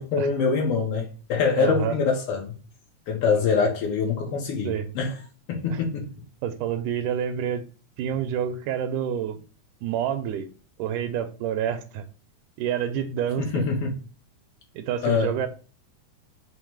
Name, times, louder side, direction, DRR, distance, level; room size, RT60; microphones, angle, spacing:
voice 1, 0.0-2.5 3.1-5.2 5.5-6.1 13.4-13.9 15.0-15.3, left 5 dB, 80° left, 1.3 m, -24 dB
voice 2, 1.6-2.0 4.6-4.9 5.7-5.8 6.4-7.7 8.0-9.4 9.8-10.5 10.8-12.0 12.6-13.6 14.8-15.5, right 9 dB, 85° right, 2.0 m, -28 dB
5.4 x 2.1 x 4.5 m
omnidirectional pair, 3.6 m